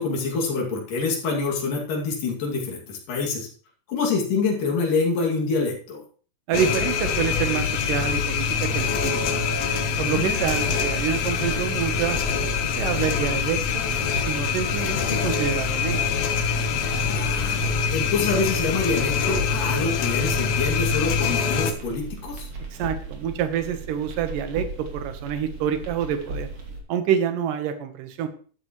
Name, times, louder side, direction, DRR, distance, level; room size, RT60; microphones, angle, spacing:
voice 1, 0.0-3.5 3.9-6.0 10.0-10.3 17.0-22.5, left 4 dB, 80° left, -1 dB, 4.1 m, -26 dB
sound 1, 6.5-21.7, left 6 dB, 65° left, 2.0 m, -25 dB
voice 2, 6.5-9.1 10.0-12.2 12.8-16.1 22.7-26.5 26.9-28.3, right 8 dB, 85° right, 8 dB, 2.7 m, -27 dB
sound 2, 7.8-26.8, right 3 dB, 50° right, 3.4 m, -37 dB
12.5 x 12.0 x 3.1 m, 0.41 s
omnidirectional pair, 3.7 m